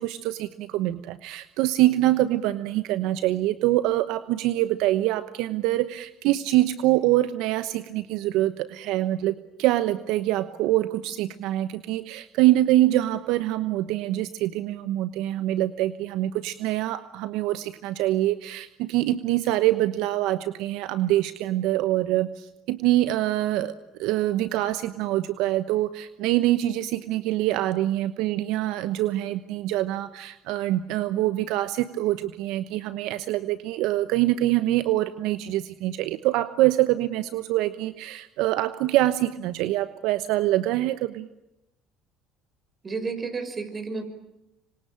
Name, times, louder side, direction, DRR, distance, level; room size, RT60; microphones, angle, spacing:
voice 1, 0.0-23.7 24.0-41.3, right 15 dB, 75° right, 12 dB, 1.0 m, -25 dB
voice 2, 42.8-44.0, right 4 dB, 30° right, 9 dB, 5.9 m, -31 dB
26.0 x 25.5 x 9.0 m, 0.91 s
supercardioid pair, 80°, 0 cm